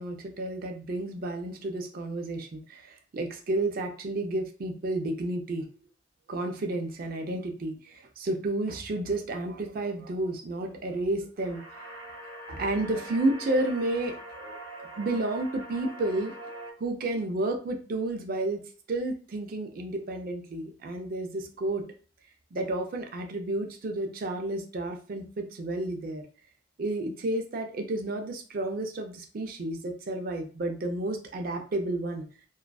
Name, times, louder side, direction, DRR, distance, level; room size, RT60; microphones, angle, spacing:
voice 1, 0.0-5.7 6.3-11.6 12.5-16.3 16.8-18.6 18.9-21.8 22.5-26.2 26.8-32.2, right 2 dB, 50° right, 4 dB, 0.4 m, -31 dB
sound 1, 11.4-16.7, right 1 dB, 80° right, 0.8 m, -43 dB
2.4 x 2.2 x 2.3 m, 0.40 s
head